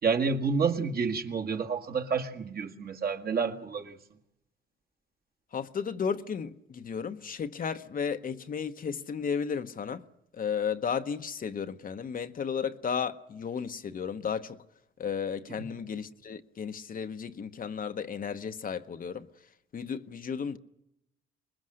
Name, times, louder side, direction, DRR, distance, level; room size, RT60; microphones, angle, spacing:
voice 1, 0.0-4.0 15.6-15.7, right 5 dB, 50° right, 2.0 m, -29 dB
voice 2, 5.5-10.0 10.3-14.6 15.0-19.3 19.7-20.6, left 6 dB, 45° left, 0.9 m, -34 dB
25.5 x 21.0 x 6.4 m
cardioid pair, 90°, 20 cm